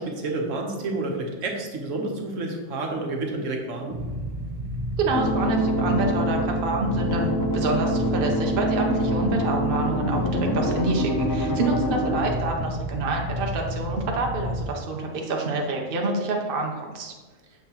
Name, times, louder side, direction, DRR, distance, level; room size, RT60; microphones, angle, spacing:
voice 1, 0.0-4.0 11.5-11.9, right 2 dB, 70° right, 2 dB, 1.3 m, -30 dB
Motorcycle / Idling, 3.9-14.6, equal, 25° right, 1.4 m, -31 dB
voice 2, 5.0-17.1, right 2 dB, 50° right, 1 dB, 0.9 m, -27 dB
sound 1, 5.1-12.2, equal, 30° left, 0.4 m, -26 dB
7.2 x 5.7 x 2.9 m, 1.3 s
omnidirectional pair, 1.4 m